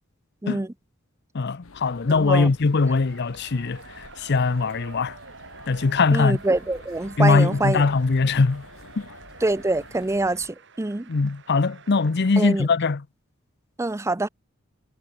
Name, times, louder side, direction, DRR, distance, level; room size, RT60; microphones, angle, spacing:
voice 1, 1.3-5.2 5.7-6.4 7.2-8.6 9.0-9.1 11.1-13.0, left 4 dB, 55° left, 0.6 m, -21 dB
sound 1, 1.6-10.5, left 3 dB, 85° left, 1.3 m, -48 dB
voice 2, 2.2-2.5 6.1-7.9 9.4-11.1 12.4-12.7 13.8-14.3, right 2 dB, 15° right, 0.5 m, -25 dB
sound 2, 2.7-12.6, right 4 dB, 60° right, 5.8 m, -47 dB
head